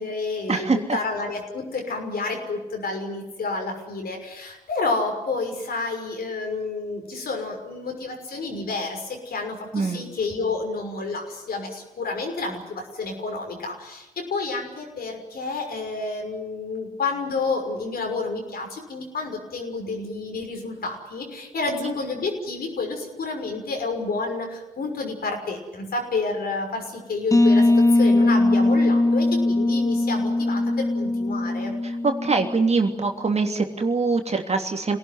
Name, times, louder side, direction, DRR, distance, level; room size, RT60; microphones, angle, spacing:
voice 1, 0.0-31.7, left 3 dB, 55° left, 3 dB, 6.2 m, -30 dB
sound 1, 27.3-32.9, left 2 dB, 15° left, 2.5 m, -20 dB
voice 2, 31.8-35.0, right 4 dB, 35° right, 4 dB, 3.1 m, -23 dB
26.5 x 18.5 x 9.6 m, 1.0 s
hypercardioid pair, 40°, 19 cm